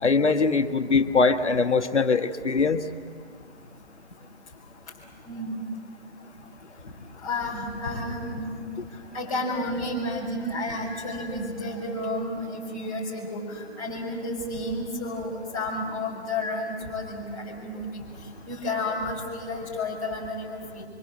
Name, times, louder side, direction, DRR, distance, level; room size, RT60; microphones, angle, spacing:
voice 1, 0.0-2.8, left 4 dB, 85° left, 9 dB, 1.4 m, -22 dB
voice 2, 5.3-5.6 7.2-8.7 9.1-18.0 18.5-20.9, left 1 dB, 30° left, -3 dB, 6.7 m, -31 dB
25.5 x 24.5 x 7.6 m, 2.1 s
figure-of-eight pair, 155°, 34 cm